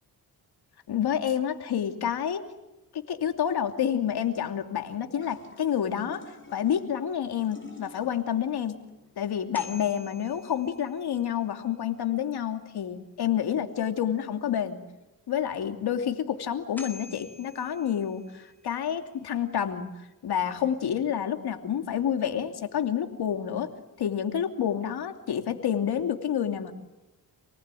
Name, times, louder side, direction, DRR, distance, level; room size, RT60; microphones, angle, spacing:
voice 1, 0.9-2.4 2.9-8.7 9.2-14.8 15.3-23.7 24.0-26.7, left 9 dB, 85° left, 6 dB, 2.9 m, -29 dB
sound 1, 5.2-10.4, left 3 dB, 30° left, 6.6 m, -50 dB
sound 2, 9.3-11.4 16.4-16.5 16.8-18.7, left 2 dB, 5° left, 4.3 m, -47 dB
29.0 x 19.5 x 9.2 m, 0.98 s
cardioid pair, 85°, 38 cm